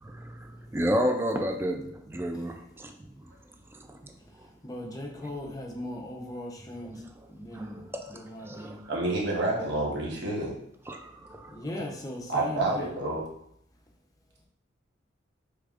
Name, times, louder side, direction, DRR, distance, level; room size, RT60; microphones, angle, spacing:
voice 1, 0.0-3.3 3.7-4.1 4.4-4.5 5.2-5.3 7.5-8.9 10.9-11.7, equal, 15° right, 0.3 m, -32 dB
voice 2, 4.6-7.0 7.3-7.8 8.1-8.8 11.5-12.9, left 1 dB, 20° left, 0.7 m, -38 dB
voice 3, 8.9-10.5 12.3-13.2, right 2 dB, 65° right, 1.1 m, -28 dB
4.9 x 3.3 x 2.4 m
head